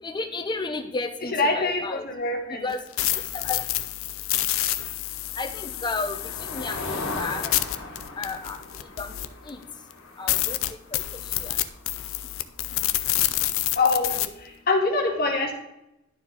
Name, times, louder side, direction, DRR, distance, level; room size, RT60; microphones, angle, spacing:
voice 1, 0.0-2.0 2.5-2.8 3.3-3.6 5.4-7.5 8.2-8.6 9.0-9.1 9.5-9.6 10.2-10.6 11.4-11.6, left 3 dB, 20° left, 6 dB, 0.7 m, -32 dB
voice 2, 1.3-2.7 13.7-15.5, left 3 dB, 50° left, 2 dB, 1.1 m, -24 dB
sound 1, 2.7-9.5 9.9-10.0 10.3-14.3, left 14 dB, 90° left, 0.5 m, -28 dB
Motor vehicle (road), 4.9-12.7, left 2 dB, 70° left, 1.6 m, -39 dB
11.0 x 4.6 x 3.8 m, 0.89 s
head